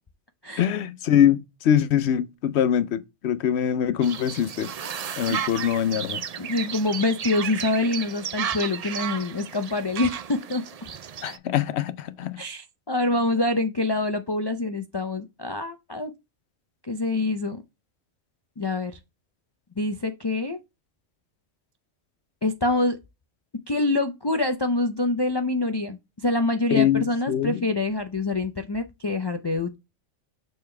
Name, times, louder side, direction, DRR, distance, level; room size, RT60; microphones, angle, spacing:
voice 1, 0.6-4.7 5.2-6.2 11.2-12.4 26.7-27.6, left 9 dB, 65° left, 0.9 m, -23 dB
sound 1, 4.0-11.4, right 8 dB, 60° right, 0.4 m, -33 dB
voice 2, 6.4-10.6 12.4-16.1 16.8-17.6 18.6-19.0 19.8-20.6 22.4-23.0 23.7-29.8, left 2 dB, 35° left, 0.4 m, -26 dB
6.7 x 4.3 x 3.2 m
omnidirectional pair, 1.3 m